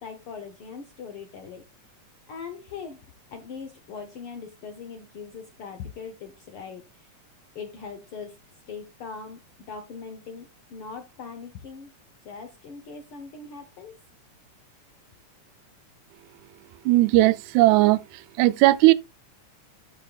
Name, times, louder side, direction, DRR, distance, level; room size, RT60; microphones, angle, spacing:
voice 1, 0.0-1.6 2.3-7.2 7.5-9.4 9.7-11.9 12.2-14.0, left 5 dB, 65° left, 1.5 m, -40 dB
voice 2, 16.9-18.0 18.4-18.9, right 18 dB, 85° right, 2.0 m, -17 dB
13.0 x 5.7 x 2.4 m
omnidirectional pair, 3.4 m